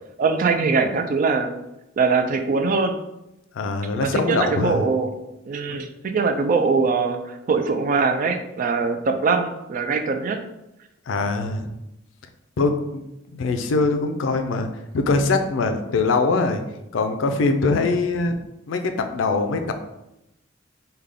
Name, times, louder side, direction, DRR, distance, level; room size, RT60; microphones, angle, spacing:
voice 1, 0.2-1.5 2.0-3.0 3.9-5.1 5.5-7.2 7.5-10.4, right 4 dB, 45° right, 7 dB, 0.3 m, -22 dB
voice 2, 3.5-4.9 5.7-5.8 11.1-11.7 12.6-13.0 13.3-14.7 14.9-16.6 16.9-18.3 18.7-19.7, left 3 dB, 75° left, 7 dB, 0.4 m, -22 dB
3.3 x 2.2 x 3.6 m, 0.89 s
head